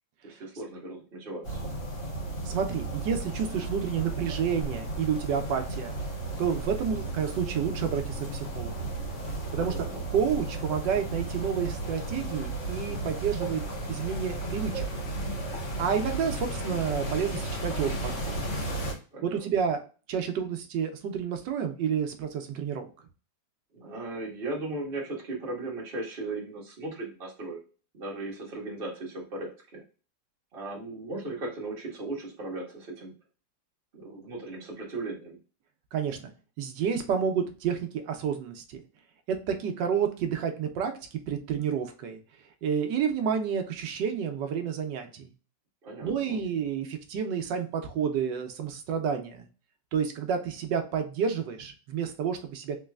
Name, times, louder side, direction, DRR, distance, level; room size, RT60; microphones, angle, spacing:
voice 1, 0.2-1.8 9.6-10.0 19.1-19.5 23.7-27.6 27.9-29.8 30.5-33.1 33.9-35.4 45.8-46.4, right 2 dB, 35° right, -2 dB, 1.4 m, -37 dB
sound 1, 1.4-18.9, right 2 dB, 60° left, 2.5 m, -34 dB
voice 2, 2.4-6.0 6.4-8.9 9.5-13.6 13.9-15.0 15.8-18.5 19.2-19.8 20.1-22.9 35.9-36.2 36.6-38.8 39.3-42.2 42.6-45.3 46.0-49.5 49.9-52.8, right 7 dB, 75° right, 6 dB, 1.3 m, -30 dB
4.0 x 3.0 x 2.2 m, 0.36 s
omnidirectional pair, 2.0 m